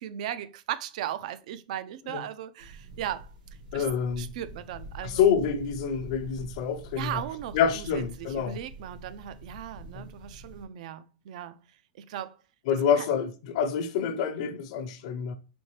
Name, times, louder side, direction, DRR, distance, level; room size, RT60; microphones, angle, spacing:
voice 1, 0.0-3.3 3.7-3.9 4.2-5.2 7.0-11.6 12.0-12.4 13.0-13.1, right 11 dB, 60° right, 0.4 m, -37 dB
sound 1, 2.6-10.6, right 1 dB, 85° right, 1.8 m, -45 dB
voice 2, 3.7-4.3 5.0-7.2 7.5-8.6 9.9-10.1 12.7-15.3, left 7 dB, 55° left, 0.6 m, -27 dB
4.3 x 3.2 x 3.1 m
supercardioid pair, 155°, 4 cm